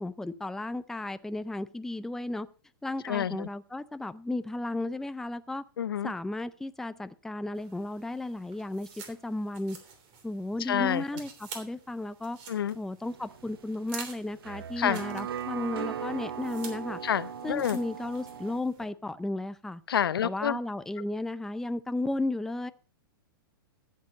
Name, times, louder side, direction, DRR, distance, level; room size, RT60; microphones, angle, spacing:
voice 1, 0.0-2.5 2.8-5.6 6.0-9.8 10.2-12.4 12.8-17.0 17.4-19.8 20.2-22.7, left 2 dB, 5° left, 12 dB, 0.5 m, -34 dB
voice 2, 3.0-3.5 5.8-6.1 10.7-11.0 12.5-12.8 14.8-15.0 17.0-17.8 19.9-20.6, left 9 dB, 75° left, 17 dB, 0.7 m, -28 dB
sound 1, 7.5-18.8, right 6 dB, 45° right, 3.1 m, -49 dB
sound 2, 13.0-18.6, right 8 dB, 75° right, 0.7 m, -39 dB
14.5 x 7.5 x 5.2 m, 0.38 s
hypercardioid pair, 115°, 12 cm